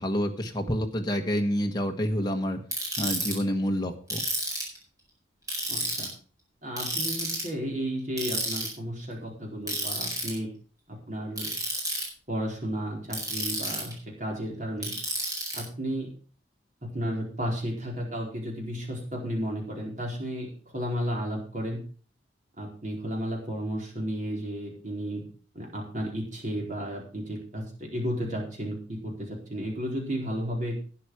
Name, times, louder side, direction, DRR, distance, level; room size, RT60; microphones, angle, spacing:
voice 1, 0.0-2.6 3.0-4.2, equal, 25° left, 3 dB, 1.4 m, -28 dB
Ratchet pawl, 2.7-3.3 4.1-4.8 5.5-6.1 6.8-7.5 8.2-8.7 9.7-10.3 11.4-12.0 13.1-13.9 14.8-15.6, right 1 dB, 20° right, 4.7 m, -30 dB
voice 2, 5.7-6.1 6.6-10.5 10.9-11.5 12.3-14.9 15.5-16.2 16.8-21.8 22.6-25.2 25.5-30.8, equal, 40° right, -1 dB, 4.4 m, -33 dB
12.0 x 9.9 x 4.9 m, 0.41 s
head